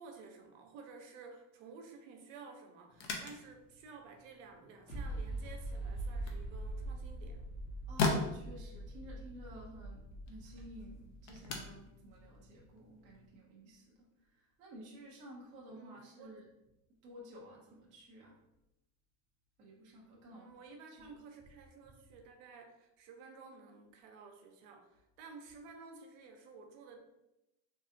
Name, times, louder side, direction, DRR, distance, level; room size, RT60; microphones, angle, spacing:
voice 1, 0.0-7.4 15.7-16.4 20.3-27.0, right 4 dB, 65° right, 4 dB, 0.7 m, -53 dB
sound 1, 2.9-13.4, left 3 dB, 45° left, 0.5 m, -42 dB
sound 2, 4.9-12.4, right 1 dB, 80° left, 1.2 m, -43 dB
voice 2, 7.9-16.5 16.9-18.4 19.6-20.5 20.9-21.5, equal, 20° right, -4 dB, 0.3 m, -53 dB
3.2 x 2.7 x 2.5 m, 0.90 s
supercardioid pair, 160°, 40 cm